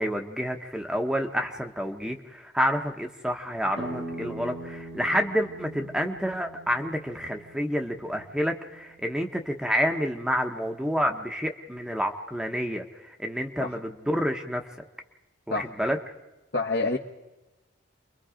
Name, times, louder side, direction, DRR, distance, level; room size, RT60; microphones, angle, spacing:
voice 1, 0.0-14.7 15.5-16.0, equal, 5° right, 4 dB, 0.9 m, -29 dB
sound 1, 3.7-9.1, right 1 dB, 90° right, 5.7 m, -41 dB
voice 2, 16.5-17.0, left 3 dB, 55° left, 0 dB, 1.1 m, -27 dB
29.0 x 22.5 x 5.0 m, 1.1 s
head